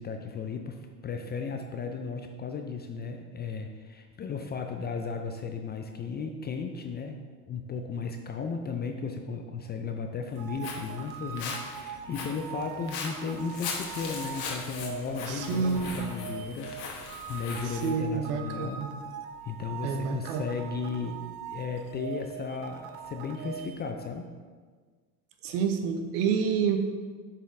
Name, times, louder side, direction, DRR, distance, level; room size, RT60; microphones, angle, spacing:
voice 1, 0.0-18.8 19.4-21.2 21.5-24.3, left 5 dB, 25° left, 5 dB, 0.3 m, -35 dB
Walk footsteps, 10.3-17.9, left 5 dB, 55° left, 1.2 m, -40 dB
sound 1, 10.4-23.9, right 8 dB, 55° right, 0.6 m, -42 dB
voice 2, 15.3-16.0 17.6-18.9 19.8-20.4 25.4-26.8, right 6 dB, 75° right, 6 dB, 0.9 m, -28 dB
sound 2, 15.6-17.6, right 2 dB, 20° right, 1.6 m, -50 dB
6.8 x 4.3 x 3.7 m, 1.5 s
supercardioid pair, 90°, 46 cm